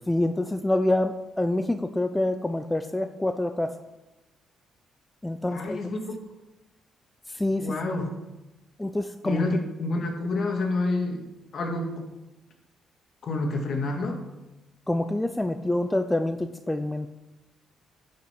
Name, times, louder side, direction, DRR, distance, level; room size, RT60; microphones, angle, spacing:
voice 1, 0.1-3.7 5.2-5.8 7.3-7.7 8.8-9.4 14.9-17.1, left 1 dB, 10° left, 9 dB, 0.5 m, -26 dB
voice 2, 5.5-6.2 7.6-8.1 9.2-11.2 11.5-12.1 13.2-14.2, left 2 dB, 55° left, 2 dB, 2.0 m, -28 dB
10.5 x 5.5 x 5.9 m, 1.0 s
cardioid pair, 90°, 0 cm